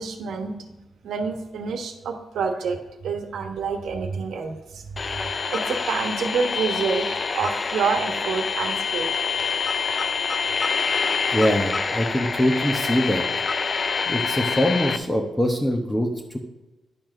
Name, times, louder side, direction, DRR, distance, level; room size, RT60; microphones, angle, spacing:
voice 1, 0.0-4.8 5.5-7.1 7.3-9.2, right 5 dB, 85° right, 5 dB, 1.2 m, -28 dB
sound 1, 5.0-15.0, left 5 dB, 40° left, 0.5 m, -26 dB
voice 2, 11.3-13.2 14.1-16.4, left 1 dB, 10° left, 1 dB, 1.0 m, -23 dB
10.5 x 4.4 x 6.4 m, 1.1 s
cardioid pair, 105°, 0 cm